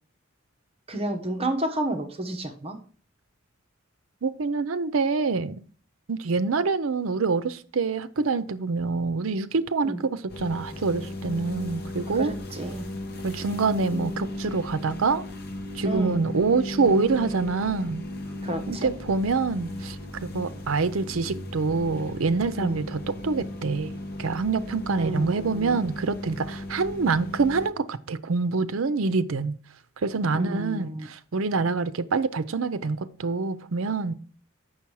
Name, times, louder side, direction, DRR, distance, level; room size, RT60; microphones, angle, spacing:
voice 1, 0.9-2.8 9.8-10.0 12.1-12.9 15.8-16.3 18.4-18.9 22.6-22.8 25.0-25.8 30.3-31.1, right 1 dB, 30° right, 1.0 m, -31 dB
voice 2, 4.2-5.6 6.1-12.3 13.2-15.2 15.7-18.0 18.7-20.0 20.2-29.6 30.0-34.1, right 4 dB, 70° right, 0.6 m, -26 dB
sound 1, 10.3-27.7, left 1 dB, 50° left, 1.0 m, -36 dB
7.2 x 6.2 x 4.7 m
head